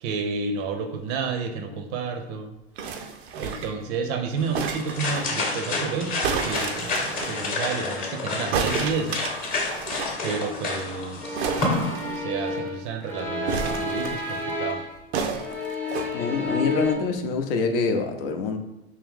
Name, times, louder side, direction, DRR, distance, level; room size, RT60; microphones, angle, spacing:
voice 1, 0.0-2.5 3.3-9.2 10.2-11.6 12.1-14.8, right 5 dB, 45° right, 5 dB, 0.5 m, -31 dB
sound 1, 2.8-3.8 4.5-5.3 6.2-7.3 8.5-10.2 10.5-10.6 10.8-10.9 11.4-12.5 13.5-14.4 15.1-16.1 16.8-16.9, right 5 dB, 90° right, 0.6 m, -30 dB
sound 2, 4.4-11.9, left 3 dB, 30° left, 0.9 m, -29 dB
sound 3, 11.2-15.0 15.3-16.9, left 2 dB, 5° left, 0.4 m, -30 dB
voice 2, 16.1-18.6, left 4 dB, 65° left, 5 dB, 0.6 m, -25 dB
3.5 x 2.8 x 3.5 m, 0.96 s
supercardioid pair, 135°, 30 cm